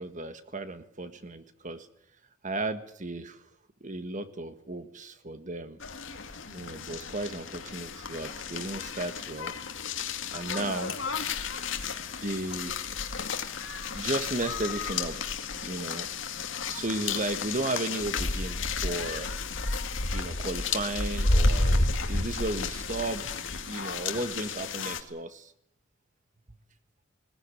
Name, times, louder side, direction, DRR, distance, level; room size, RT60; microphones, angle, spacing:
voice 1, 0.0-1.9 2.4-3.4 3.8-5.8 6.5-9.5 10.3-10.9 12.2-12.7 13.9-15.2 15.5-16.1 16.7-19.3 20.1-23.2 23.6-25.5, right 2 dB, 40° right, 10 dB, 1.6 m, -34 dB
sound 1, 5.8-25.0, left 3 dB, 65° left, 2.2 m, -31 dB
20.0 x 18.5 x 9.9 m, 0.71 s
head